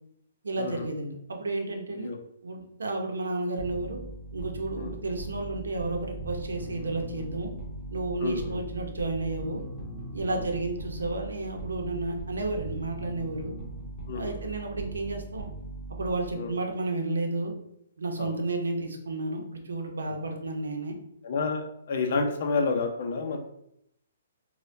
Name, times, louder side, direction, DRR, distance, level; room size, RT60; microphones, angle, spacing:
voice 1, 0.4-2.1 2.4-4.0 4.3-7.5 7.9-9.7 10.1-13.5 14.1-15.5 15.9-17.5 18.0-21.0, right 2 dB, 90° right, 2 dB, 0.6 m, -32 dB
sound 1, 3.6-16.5, right 2 dB, 15° left, 1.1 m, -39 dB
voice 2, 8.2-8.6 10.3-10.4 14.1-14.3 16.4-16.5 18.2-18.3 21.2-23.4, left 4 dB, 55° left, 3 dB, 0.5 m, -30 dB
4.1 x 2.2 x 2.6 m, 0.75 s
hypercardioid pair, 145°, 0 cm